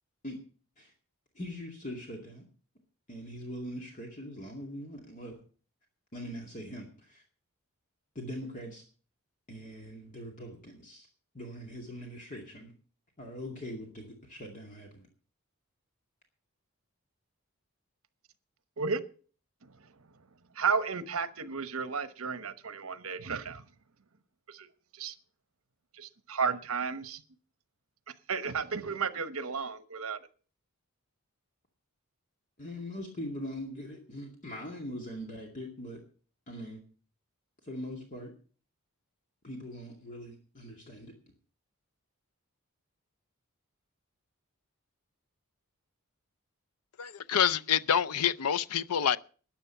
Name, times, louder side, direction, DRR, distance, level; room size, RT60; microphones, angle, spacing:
voice 1, 1.3-2.4 3.1-5.4 6.1-7.2 8.1-8.8 9.5-11.1 11.3-12.7 13.2-15.1 32.6-36.0 36.5-36.8 37.6-38.3 39.4-41.1, equal, 35° left, 2.3 m, -42 dB
voice 2, 20.5-23.6 24.5-24.7 24.9-25.1 25.9-27.2 28.3-30.2, right 5 dB, 70° right, 1.0 m, -33 dB
voice 3, 47.0-49.2, left 8 dB, 85° left, 0.5 m, -27 dB
13.5 x 10.0 x 5.7 m
head